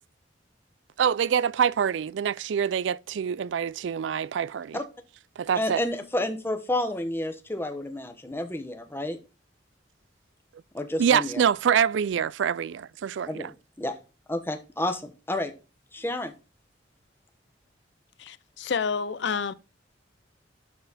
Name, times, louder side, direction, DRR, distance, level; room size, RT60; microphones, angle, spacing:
voice 1, 1.0-4.8 5.4-5.8 11.0-13.5, right 8 dB, 75° right, 0.3 m, -25 dB
voice 2, 5.5-9.2 10.7-11.4 13.3-14.0 14.3-15.5 15.9-16.3, left 1 dB, 10° left, 1.1 m, -30 dB
voice 3, 18.2-19.5, left 5 dB, 65° left, 0.5 m, -29 dB
12.0 x 4.1 x 4.1 m
head